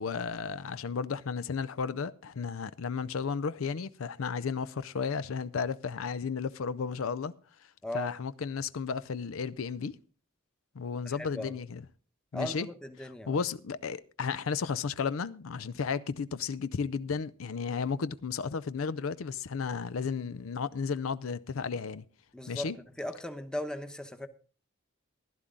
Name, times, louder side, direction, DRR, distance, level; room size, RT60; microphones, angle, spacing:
voice 1, 0.0-7.3 7.9-10.0 10.7-11.8 12.3-12.7 13.3-22.0 22.5-22.8, left 5 dB, 80° left, 0.5 m, -33 dB
voice 2, 7.8-8.1 11.0-11.6 12.3-13.4 22.3-24.3, left 1 dB, 5° left, 0.9 m, -38 dB
15.5 x 11.5 x 3.7 m
head